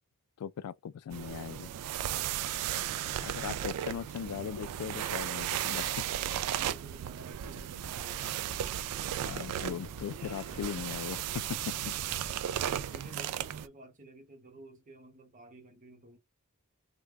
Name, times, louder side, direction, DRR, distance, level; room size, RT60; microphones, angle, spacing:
voice 1, 0.4-1.7 3.2-6.1 9.2-12.0, left 8 dB, 75° left, 0.3 m, -39 dB
sound 1, 1.1-13.7, right 11 dB, 85° right, 0.3 m, -35 dB
voice 2, 6.4-9.1 12.7-16.2, right 1 dB, 35° right, 0.9 m, -53 dB
sound 2, 7.4-12.7, right 1 dB, 65° right, 0.9 m, -46 dB
sound 3, 9.7-13.6, left 4 dB, 20° left, 0.9 m, -58 dB
3.2 x 2.2 x 3.4 m
head